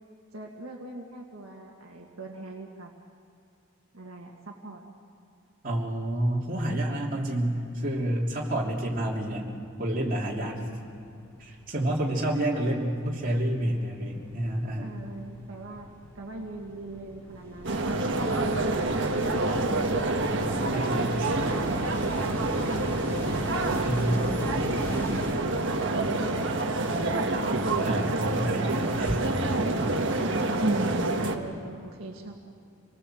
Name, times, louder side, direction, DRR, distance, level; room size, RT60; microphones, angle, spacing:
voice 1, 0.3-2.9 3.9-4.8 12.5-12.8 14.8-18.6 20.8-21.2 21.6-25.3 25.9-26.4 26.9-27.7 30.1-32.4, right 2 dB, 70° right, 0 dB, 1.8 m, -41 dB
voice 2, 5.6-9.5 9.8-10.6 11.4-14.9 19.4-21.5 23.8-24.2 27.8-29.3 29.8-30.0, right 1 dB, 40° right, -3 dB, 3.0 m, -29 dB
sound 1, 9.3-10.0 10.3-25.3, equal, 10° left, 4.0 m, -39 dB
sound 2, 17.6-31.4, right 2 dB, 55° right, 1.4 m, -27 dB
26.5 x 19.5 x 7.7 m, 2.5 s
head